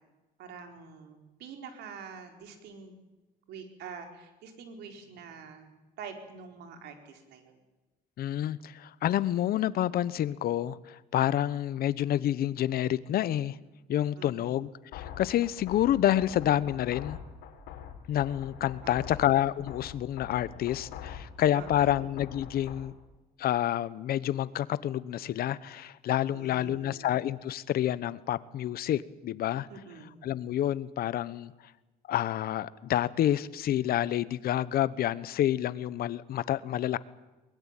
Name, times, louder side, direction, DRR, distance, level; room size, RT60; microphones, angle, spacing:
voice 1, 0.4-2.9 3.5-5.7 6.0-7.6 14.2-14.5 18.8-19.3 21.5-22.0 26.3-27.2 29.7-30.1, right 5 dB, 80° right, 5 dB, 4.6 m, -46 dB
voice 2, 8.2-13.6 13.9-17.2 18.1-22.9 23.4-29.7 30.2-31.5 32.1-37.0, left 12 dB, 65° left, 17 dB, 1.0 m, -28 dB
sound 1, 14.9-22.9, left 8 dB, 85° left, 3.9 m, -44 dB
23.0 x 21.0 x 9.1 m, 1.1 s
cardioid pair, 110°, 17 cm